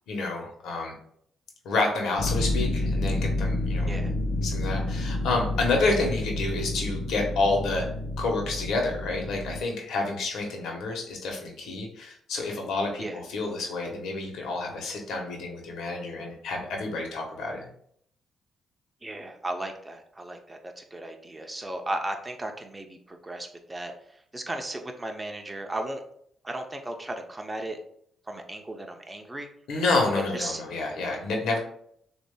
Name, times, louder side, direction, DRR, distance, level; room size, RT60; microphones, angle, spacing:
voice 1, 0.1-0.9 1.6-3.9 4.4-7.9 8.2-17.6 29.7-31.6, left 3 dB, 75° left, 1 dB, 1.2 m, -29 dB
sound 1, 2.2-9.6, left 1 dB, 55° left, 0.8 m, -29 dB
voice 2, 19.0-23.9 24.3-26.0 26.4-27.8 28.3-29.5 30.3-30.6, right 1 dB, 15° right, 4 dB, 0.6 m, -35 dB
6.5 x 2.7 x 2.2 m, 0.67 s
cardioid pair, 90°, 0 cm